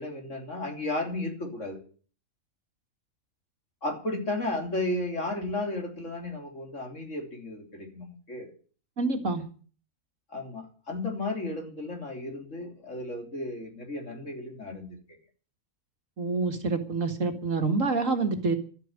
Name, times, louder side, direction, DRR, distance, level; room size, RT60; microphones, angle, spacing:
voice 1, 0.0-1.8 3.8-8.5 10.3-15.0, left 2 dB, 60° left, 3 dB, 3.6 m, -34 dB
voice 2, 9.0-9.4 16.2-18.6, right 3 dB, 65° right, 6 dB, 2.3 m, -27 dB
12.5 x 9.2 x 9.6 m, 0.42 s
omnidirectional pair, 1.5 m